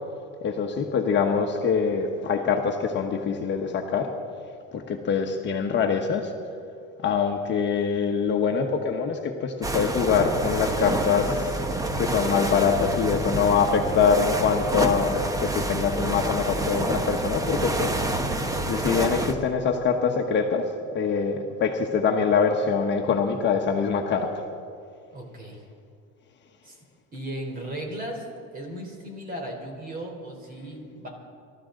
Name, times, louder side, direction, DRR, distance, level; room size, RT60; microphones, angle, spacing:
voice 1, 0.4-4.1 4.7-6.3 7.0-11.6 12.0-18.0 18.7-24.3, left 6 dB, 35° left, 2 dB, 1.3 m, -24 dB
sound 1, 9.6-19.3, right 2 dB, 10° right, 1.0 m, -28 dB
voice 2, 25.1-25.7 26.6-26.8 27.1-28.3 28.5-31.1, right 1 dB, 30° right, 2 dB, 3.7 m, -36 dB
26.0 x 13.5 x 3.9 m, 2.3 s
cardioid pair, 135°, 30 cm